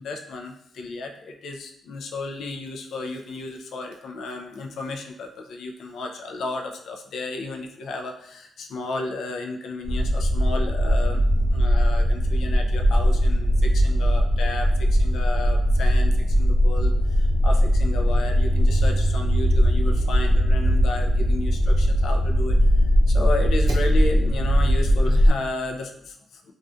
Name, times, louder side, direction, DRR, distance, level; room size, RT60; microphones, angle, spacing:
voice 1, 0.0-11.2 11.5-26.5, left 3 dB, 75° left, 2 dB, 0.3 m, -33 dB
sound 1, 9.8-25.3, equal, 65° right, 0.6 m, -20 dB
2.4 x 2.2 x 2.4 m, 0.72 s
cardioid pair, 105°, 0 cm